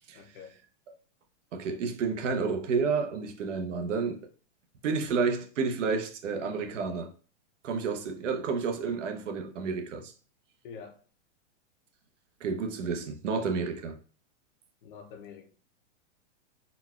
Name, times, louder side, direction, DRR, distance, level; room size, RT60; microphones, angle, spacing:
voice 1, 0.1-0.6 8.2-8.3 10.6-11.0 14.8-15.5, left 6 dB, 45° left, 0.5 m, -46 dB
voice 2, 1.5-4.2 4.8-7.1 7.6-10.1 12.4-13.9, right 5 dB, 80° right, 0.8 m, -30 dB
4.0 x 2.2 x 2.3 m
supercardioid pair, 160°, 36 cm